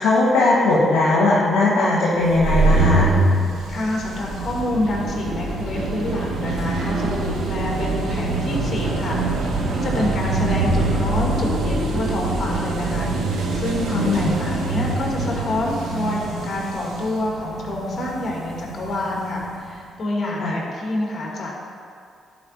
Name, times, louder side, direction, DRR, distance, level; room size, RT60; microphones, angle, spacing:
voice 1, 0.0-3.1 13.9-14.3 20.4-20.5, left 2 dB, 85° left, -5 dB, 1.3 m, -18 dB
sound 1, 2.2-19.6, right 2 dB, 80° right, 1.2 m, -24 dB
voice 2, 3.7-9.2 9.7-21.6, left 1 dB, 50° left, -2 dB, 2.2 m, -27 dB
11.0 x 5.1 x 4.2 m, 2.4 s
supercardioid pair, 55°, 0 cm